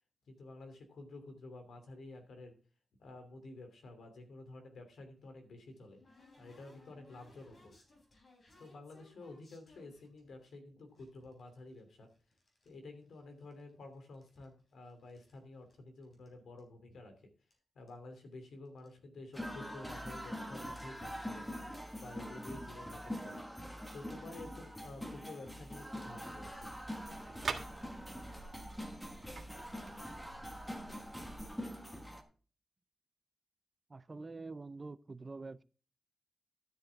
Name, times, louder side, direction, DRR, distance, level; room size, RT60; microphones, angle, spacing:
voice 1, 0.3-2.6 3.0-6.0 6.4-7.7 8.6-12.1 12.6-17.3 17.7-21.5 22.0-23.4 23.9-26.7, left 2 dB, 80° left, 3.0 m, -51 dB
sound 1, 5.2-10.5 11.0-12.7 13.0-13.8 14.0-15.4 15.7-15.8 16.0-16.3 16.6-16.7 17.5-17.6 17.9-18.1 18.7-18.9, left 2 dB, 40° left, 4.0 m, -64 dB
sound 2, 19.3-32.2, equal, 5° left, 1.4 m, -44 dB
sound 3, 26.4-31.5, right 4 dB, 45° right, 1.5 m, -46 dB
voice 2, 33.9-35.6, right 3 dB, 25° right, 0.4 m, -46 dB
13.0 x 7.9 x 3.5 m
wide cardioid pair, 160°, 0 cm